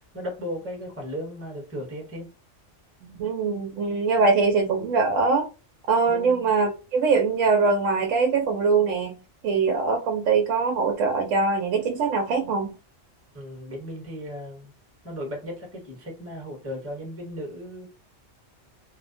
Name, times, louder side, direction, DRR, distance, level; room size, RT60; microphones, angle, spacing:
voice 1, 0.1-2.3 6.1-6.5 13.3-14.7 15.0-17.9, equal, 15° right, 0.8 m, -36 dB
voice 2, 3.0-5.5 5.9-12.7, right 4 dB, 90° right, 1.0 m, -23 dB
2.6 x 2.1 x 2.6 m
omnidirectional pair, 1.3 m